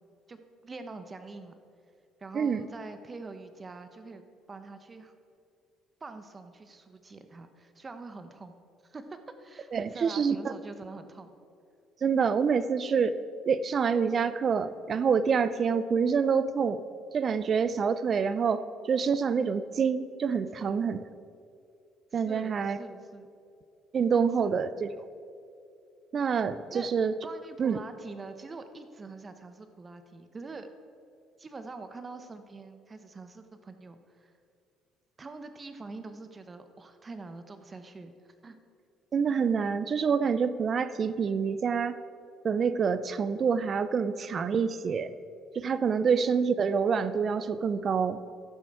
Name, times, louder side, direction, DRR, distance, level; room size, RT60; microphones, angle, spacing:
voice 1, 0.3-1.5 2.2-4.2 4.5-5.1 6.0-8.5 8.8-11.3 20.6-20.8 22.1-23.3 24.4-24.6 26.7-26.9 27.2-30.7 31.4-34.3 35.2-38.1 38.4-38.6, right 3 dB, 30° right, 9 dB, 0.9 m, -44 dB
voice 2, 2.3-2.7 9.7-10.5 12.0-13.2 13.5-16.8 17.1-21.0 22.1-22.8 23.9-25.1 26.1-27.1 27.6-27.8 39.1-42.0 42.4-45.1 45.5-48.2, right 6 dB, 50° right, 14 dB, 0.5 m, -27 dB
12.0 x 7.3 x 4.8 m, 2.4 s
supercardioid pair, 65°, 0 cm